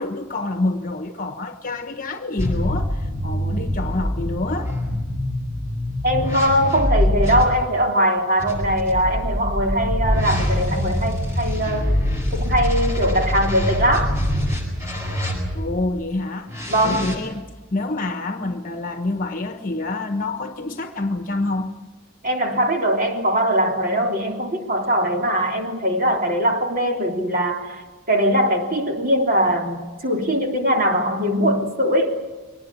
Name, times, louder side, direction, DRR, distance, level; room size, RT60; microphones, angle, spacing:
voice 1, 0.0-4.7 15.5-21.8, left 2 dB, 40° left, 1.2 m, -27 dB
sound 1, 2.4-7.4 8.4-15.8 16.5-17.1, equal, 15° right, 7.8 m, -24 dB
voice 2, 6.0-12.0 12.3-14.2 16.7-17.1 22.2-27.8 28.1-32.2, equal, 40° right, 3.4 m, -21 dB
24.5 x 19.5 x 8.5 m
head